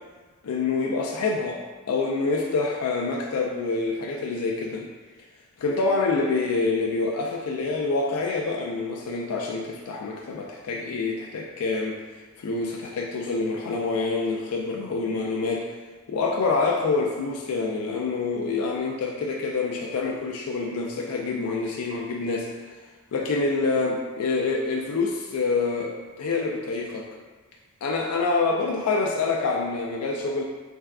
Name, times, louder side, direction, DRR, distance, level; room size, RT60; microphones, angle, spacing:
voice 1, 0.4-1.6 1.9-4.9 5.6-12.0 12.4-15.7 16.1-22.8 23.1-27.1 27.8-30.4, left 3 dB, 85° left, 0 dB, 0.4 m, -26 dB
3.3 x 2.2 x 3.5 m, 1.3 s
head